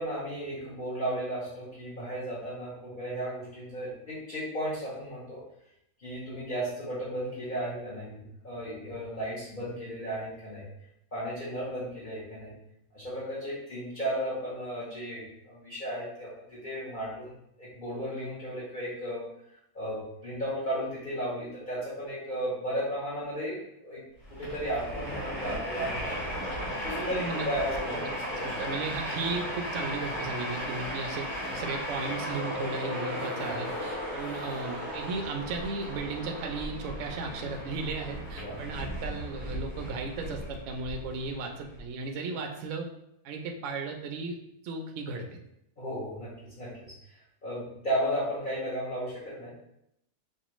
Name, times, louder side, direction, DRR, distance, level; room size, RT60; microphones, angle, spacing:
voice 1, 0.0-5.4 6.0-10.7 11.1-12.5 12.9-24.0 24.3-26.3 26.8-28.5 38.4-38.6 45.8-47.2 47.4-49.6, equal, 35° left, -9 dB, 1.0 m, -35 dB
Train, 24.2-41.8, equal, 60° left, 1.9 m, -36 dB
voice 2, 27.1-27.4 28.4-42.9 43.2-44.4 44.6-45.4, right 3 dB, 65° right, 3 dB, 0.8 m, -35 dB
5.4 x 2.4 x 3.0 m, 0.78 s
omnidirectional pair, 1.7 m